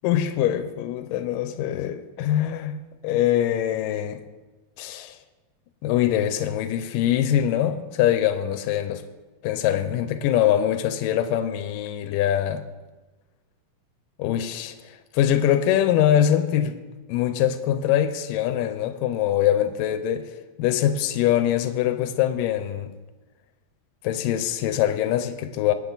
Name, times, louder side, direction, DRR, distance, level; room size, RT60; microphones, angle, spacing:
voice 1, 0.0-4.2 4.8-5.2 5.8-9.0 9.4-12.7 14.2-14.8 15.1-16.8 17.1-20.3 20.6-22.9 24.0-25.7, left 11 dB, 85° left, 2.4 m, -23 dB
20.0 x 9.0 x 4.0 m
omnidirectional pair, 3.8 m